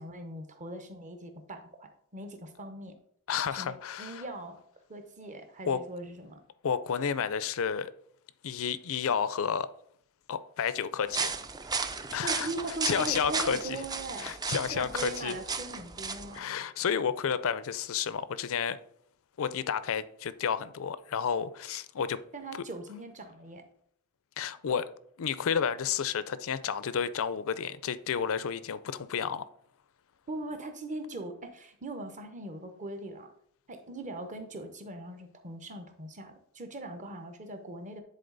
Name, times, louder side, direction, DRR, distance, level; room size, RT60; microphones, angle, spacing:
voice 1, 0.0-2.9 3.5-4.6 4.9-6.4 12.2-14.3 14.7-16.5 22.3-23.6 30.3-33.3 33.7-38.0, right 2 dB, 35° right, 1.0 m, -40 dB
voice 2, 3.3-4.2 5.7-5.8 6.6-7.9 8.4-9.7 10.3-11.3 12.1-12.5 12.8-13.8 14.2-15.3 16.3-18.8 19.4-22.2 24.4-24.9 25.2-29.4, left 7 dB, 65° left, 0.5 m, -31 dB
sound 1, 11.1-16.4, right 4 dB, 20° right, 0.4 m, -35 dB
10.0 x 4.2 x 4.0 m
head